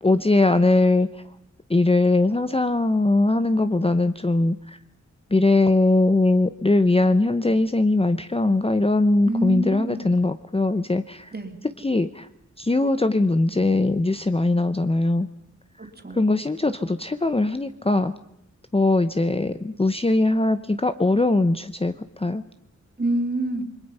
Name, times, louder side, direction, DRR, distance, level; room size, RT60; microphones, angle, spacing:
voice 1, 0.0-1.2 1.7-4.8 5.3-11.3 11.8-12.3 12.6-15.3 16.1-18.1 18.7-22.4, left 2 dB, 20° left, 10 dB, 0.8 m, -21 dB
voice 2, 9.2-10.1 11.3-11.6 15.8-16.3 23.0-23.6, right 1 dB, 35° right, 4 dB, 3.2 m, -27 dB
28.5 x 22.0 x 5.6 m, 0.78 s
wide cardioid pair, 85°, 30 cm